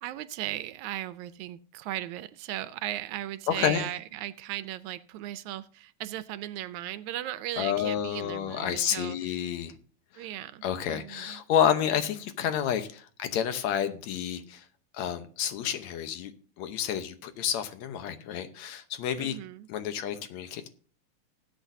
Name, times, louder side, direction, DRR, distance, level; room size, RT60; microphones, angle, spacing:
voice 1, 0.0-9.3 10.1-11.4 19.2-19.7, right 13 dB, 85° right, 2.0 m, -37 dB
voice 2, 3.5-3.8 7.6-9.8 10.1-10.3 10.6-14.7 14.9-16.3 16.6-19.4 19.7-20.7, left 9 dB, 75° left, 2.2 m, -29 dB
19.0 x 8.3 x 2.7 m
omnidirectional pair, 3.3 m